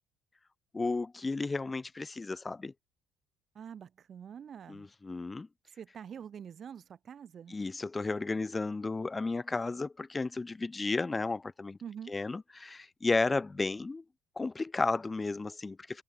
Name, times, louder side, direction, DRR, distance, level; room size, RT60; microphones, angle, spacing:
voice 1, 0.7-2.7 4.7-5.5 7.5-11.8 12.1-14.0 14.4-16.0, left 3 dB, 15° left, 1.9 m, -33 dB
voice 2, 3.5-4.9 5.8-7.5 11.8-12.1, right 8 dB, 40° right, 3.3 m, -45 dB
cardioid pair, 130°, 0 cm